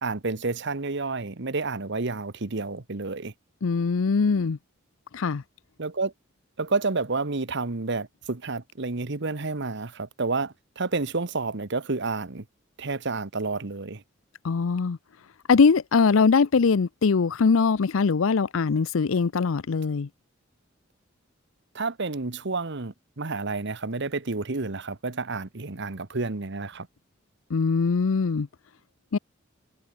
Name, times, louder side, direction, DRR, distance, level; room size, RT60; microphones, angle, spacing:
voice 1, 0.0-3.3 5.8-6.1 6.6-12.4 12.8-14.0 21.7-26.9, right 3 dB, 60° right, 1.3 m, -30 dB
voice 2, 3.6-4.6 5.1-5.4 14.4-15.0 15.5-20.1 27.5-28.5 29.1-29.2, left 5 dB, 85° left, 0.6 m, -22 dB
head